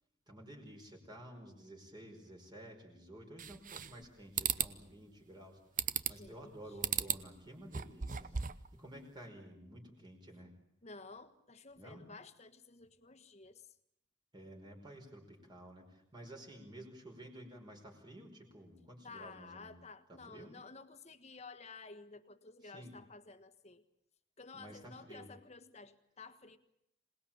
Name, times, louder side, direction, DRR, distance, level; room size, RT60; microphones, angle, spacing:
voice 1, 0.3-8.4 8.7-10.5 11.8-12.0 14.3-19.7 20.1-20.5 22.6-23.0 24.5-25.3, right 1 dB, 25° right, 1 dB, 5.0 m, -52 dB
sound 1, 3.4-4.0 4.4-4.7 5.8-6.3 6.8-7.2 7.6-8.7, right 9 dB, 45° right, 0.9 m, -35 dB
voice 2, 6.1-6.8 10.8-13.8 19.0-23.8 24.4-26.6, left 4 dB, 35° left, 11 dB, 1.6 m, -53 dB
26.5 x 19.5 x 8.8 m, 0.77 s
head